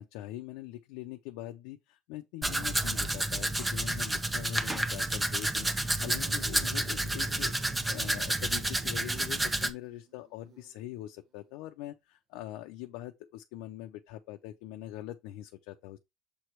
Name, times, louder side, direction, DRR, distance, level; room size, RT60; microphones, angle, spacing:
voice 1, 0.0-7.5 7.9-16.0, left 14 dB, 85° left, 0.6 m, -43 dB
Domestic sounds home sounds, 2.4-9.7, right 1 dB, 10° right, 0.8 m, -30 dB
Insect, 6.0-11.0, right 6 dB, 45° right, 1.0 m, -52 dB
7.0 x 3.2 x 4.5 m
cardioid pair, 130°, 0 cm